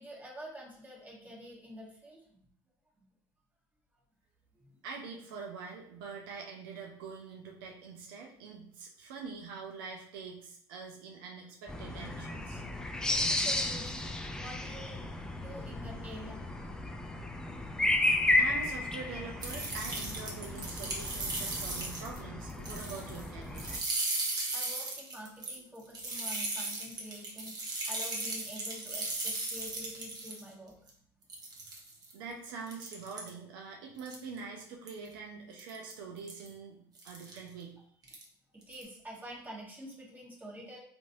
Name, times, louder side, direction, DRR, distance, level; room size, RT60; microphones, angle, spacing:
voice 1, 0.0-2.4 4.6-4.7 13.1-15.0 15.4-16.4 24.5-30.7 38.7-40.8, equal, 15° right, -3 dB, 1.2 m, -47 dB
voice 2, 4.8-12.6 18.4-23.9 32.1-37.8, right 5 dB, 80° right, 0 dB, 0.5 m, -44 dB
sound 1, 11.7-23.8, left 2 dB, 5° left, 0.3 m, -33 dB
sound 2, 19.4-22.2 22.5-23.3 23.5-30.4 30.9-31.0 31.3-32.1 32.7-33.3 34.0-34.4 34.9-35.1 35.6-35.9 36.3-36.5 37.0-37.4 38.0-38.2 38.6-38.8, right 2 dB, 35° right, 0.9 m, -37 dB
3.0 x 2.6 x 2.6 m, 0.63 s
hypercardioid pair, 80°, 12 cm